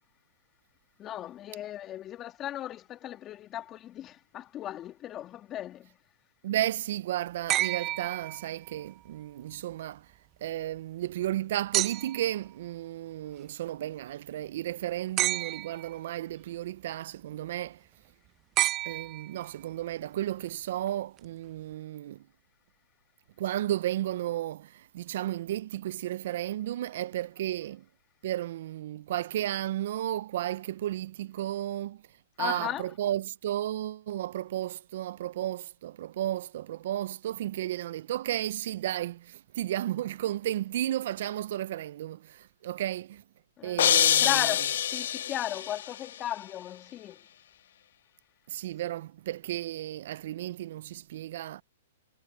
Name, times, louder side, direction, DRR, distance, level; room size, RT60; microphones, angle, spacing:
voice 1, 1.0-6.0 32.4-32.9 43.6-47.2, left 12 dB, 25° left, 3.1 m, -36 dB
voice 2, 6.4-10.1 10.4-17.8 18.9-22.2 23.4-27.8 28.2-32.0 32.4-43.2 43.6-44.4 48.5-51.6, right 13 dB, 60° right, 0.5 m, -33 dB
sound 1, 7.5-8.9 11.7-12.4 15.2-16.0 18.6-19.6 21.2-21.3, right 15 dB, 30° right, 0.9 m, -30 dB
sound 2, 43.8-45.9, left 10 dB, 70° left, 0.5 m, -25 dB
hypercardioid pair, 130°, 0 cm